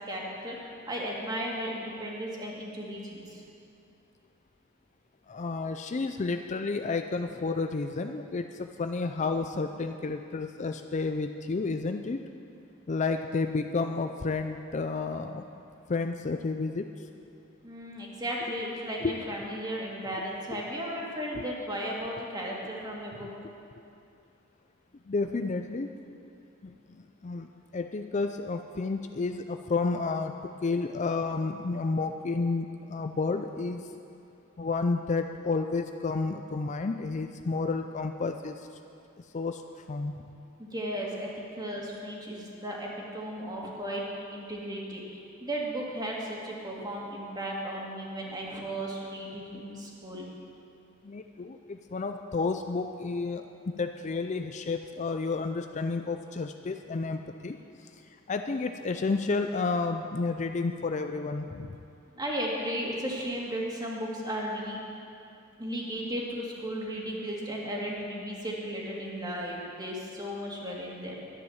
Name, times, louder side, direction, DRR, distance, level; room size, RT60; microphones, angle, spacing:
voice 1, 0.1-0.6 0.9-3.4 17.6-23.3 40.6-44.0 44.3-50.3 62.1-64.8 65.6-71.2, equal, 20° right, -3 dB, 2.3 m, -35 dB
voice 2, 5.3-12.2 12.9-15.5 15.9-16.9 19.0-19.1 21.4-21.5 25.1-25.9 26.6-26.7 27.2-33.8 34.6-38.7 39.3-39.6 39.9-40.1 51.0-53.4 53.8-57.6 58.3-61.7, left 3 dB, 35° left, 6 dB, 0.4 m, -31 dB
12.5 x 10.5 x 7.2 m, 2.7 s
head